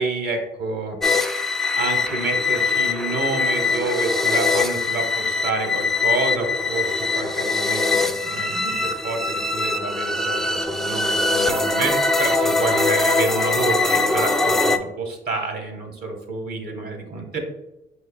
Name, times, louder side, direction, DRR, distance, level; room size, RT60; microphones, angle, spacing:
voice 1, 0.0-1.4 1.8-17.4, right 3 dB, 55° right, 4 dB, 1.0 m, -28 dB
sound 1, 1.0-14.8, left 3 dB, ahead, 0.3 m, -22 dB
5.4 x 4.1 x 2.2 m, 0.91 s
cardioid pair, 90°, 20 cm